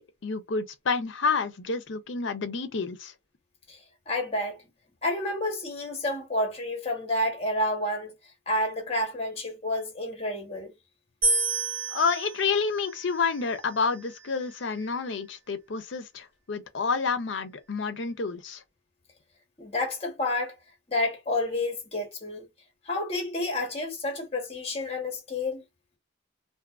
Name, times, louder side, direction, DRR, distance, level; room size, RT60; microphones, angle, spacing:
voice 1, 0.0-3.1 11.9-18.6, left 5 dB, 75° left, 0.5 m, -29 dB
voice 2, 4.1-4.6 5.0-8.1 8.5-10.7 19.6-20.6 20.9-22.5 22.9-25.6, left 1 dB, 30° left, 1.0 m, -29 dB
sound 1, 11.2-14.4, right 3 dB, 85° right, 1.3 m, -31 dB
2.6 x 2.4 x 2.4 m
head